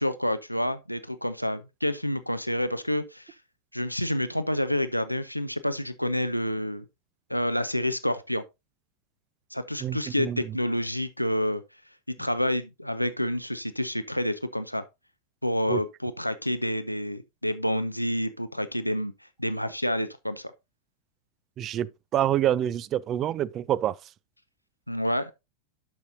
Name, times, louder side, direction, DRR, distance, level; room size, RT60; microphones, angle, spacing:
voice 1, 0.0-3.3 3.7-6.8 7.3-8.4 9.5-11.6 12.2-14.8 15.4-19.1 19.4-20.5 24.9-25.3, equal, 90° left, 0.5 m, -28 dB
voice 2, 9.8-10.5 15.7-15.8 21.6-24.0, right 11 dB, 30° right, 0.4 m, -27 dB
12.0 x 5.5 x 2.7 m
figure-of-eight pair, 90°, 0 cm